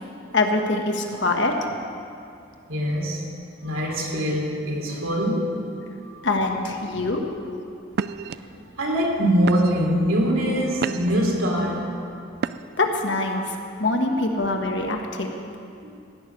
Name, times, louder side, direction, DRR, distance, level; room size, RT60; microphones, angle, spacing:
voice 1, 0.3-1.7 6.2-7.2 12.8-15.3, left 2 dB, 60° left, 3 dB, 1.5 m, -24 dB
voice 2, 2.7-3.2 3.6-5.7 6.0-6.2 8.4-11.9 13.3-13.5 14.1-14.2 14.8-14.9 15.8-15.9, equal, 85° right, -2 dB, 3.2 m, -24 dB
sound 1, 7.1-7.4 7.9-8.3 9.0-9.1 9.5-10.0 10.5-11.3 12.4-12.9, right 6 dB, 50° right, 0.3 m, -30 dB
16.5 x 6.6 x 9.4 m, 2.5 s
head